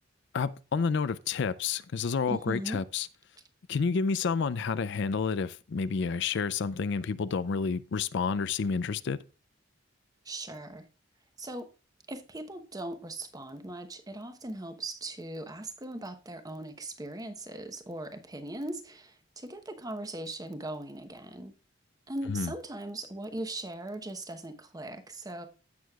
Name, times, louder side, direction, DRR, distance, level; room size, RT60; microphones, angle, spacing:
voice 1, 0.3-3.1 3.7-9.2 22.3-22.5, left 5 dB, 65° left, 0.4 m, -29 dB
voice 2, 2.3-2.8 10.2-10.8 11.4-11.7 12.1-21.5 22.1-25.5, right 1 dB, 20° right, 0.9 m, -39 dB
15.5 x 6.4 x 2.3 m
head